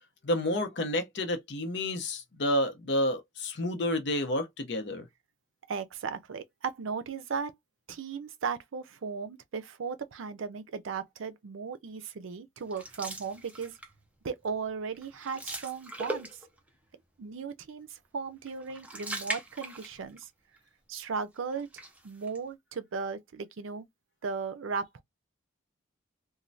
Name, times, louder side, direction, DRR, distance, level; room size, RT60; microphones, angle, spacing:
voice 1, 0.2-5.1, left 1 dB, 60° left, 0.7 m, -30 dB
voice 2, 5.7-7.5 7.9-13.8 14.2-16.3 17.2-20.3 20.9-21.7 22.0-23.8 24.2-25.0, right 5 dB, 85° right, 0.5 m, -36 dB
sound 1, 12.7-14.0 14.4-14.7 14.9-16.7 18.4-20.2 20.6-20.7 21.5-22.4, right 1 dB, 5° right, 0.4 m, -40 dB
3.1 x 2.2 x 2.6 m
head